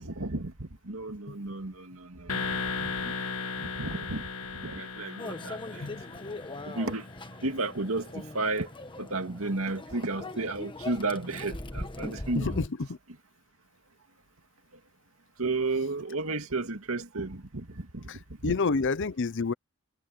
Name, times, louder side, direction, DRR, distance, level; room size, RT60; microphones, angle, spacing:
voice 1, 0.0-4.2 4.6-5.9 6.7-7.1 7.4-8.7 9.0-12.6 15.4-18.6, right 2 dB, 65° right, 2.3 m, -33 dB
sound 1, 2.3-7.2, left 4 dB, 70° left, 2.0 m, -36 dB
Microwave oven, 5.2-12.7, left 2 dB, 20° left, 1.4 m, -40 dB
voice 2, 12.3-13.0 18.1-18.2 18.4-19.5, left 4 dB, 55° left, 0.7 m, -29 dB
head